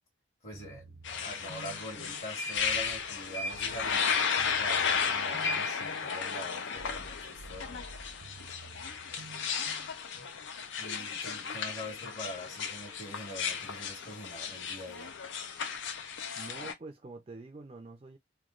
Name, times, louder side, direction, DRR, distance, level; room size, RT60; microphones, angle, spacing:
voice 1, 0.4-7.8 10.2-10.3 10.8-15.1, equal, 50° left, 1.3 m, -44 dB
sound 1, 0.5-10.3, right 2 dB, 70° right, 0.7 m, -52 dB
sound 2, 1.0-16.7, left 6 dB, 90° left, 0.5 m, -34 dB
voice 2, 16.4-18.2, right 3 dB, 35° right, 0.4 m, -46 dB
3.1 x 2.3 x 2.4 m
head